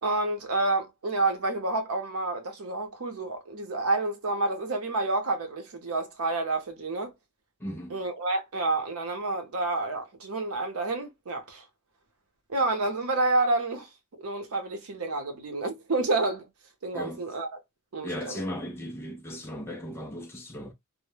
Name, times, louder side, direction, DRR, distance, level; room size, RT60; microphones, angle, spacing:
voice 1, 0.0-7.1 7.9-11.6 12.5-13.9 14.2-16.5 16.8-17.5 17.9-18.4, right 2 dB, 85° right, 0.7 m, -29 dB
voice 2, 7.6-8.0 16.9-17.2 18.0-20.7, left 1 dB, 10° left, 0.3 m, -36 dB
2.0 x 2.0 x 3.0 m
head